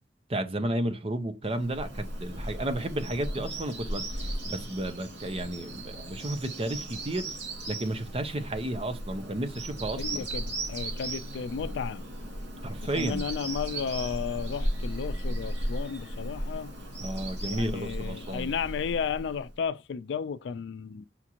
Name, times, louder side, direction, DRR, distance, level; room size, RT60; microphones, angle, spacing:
voice 1, 0.3-4.0 4.4-7.3 7.7-10.2 12.6-13.2 17.0-18.5, right 1 dB, 35° right, 0.6 m, -32 dB
Bird vocalization bird call bird song, 1.5-19.5, right 1 dB, 85° right, 2.3 m, -36 dB
voice 2, 9.9-12.0 12.9-16.7 17.5-21.1, left 6 dB, 85° left, 0.3 m, -33 dB
5.8 x 2.5 x 2.8 m
head